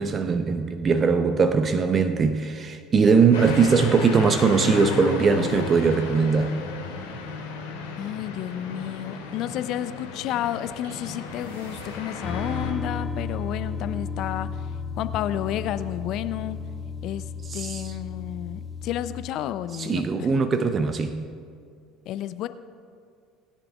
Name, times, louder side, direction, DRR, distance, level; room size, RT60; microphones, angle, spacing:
voice 1, 0.0-6.5 17.5-17.9 19.7-21.3, right 5 dB, 35° right, 0.6 m, -21 dB
sound 1, 3.3-12.7, left 4 dB, 75° left, 2.2 m, -34 dB
voice 2, 8.0-14.5 15.0-16.6 17.0-17.2 17.5-20.3 22.1-22.5, left 12 dB, 55° left, 0.4 m, -31 dB
sound 2, 10.8-12.6, right 1 dB, 70° right, 1.3 m, -46 dB
sound 3, 12.2-19.3, left 5 dB, 20° left, 1.9 m, -33 dB
20.0 x 10.0 x 2.3 m
hypercardioid pair, 65°, 0 cm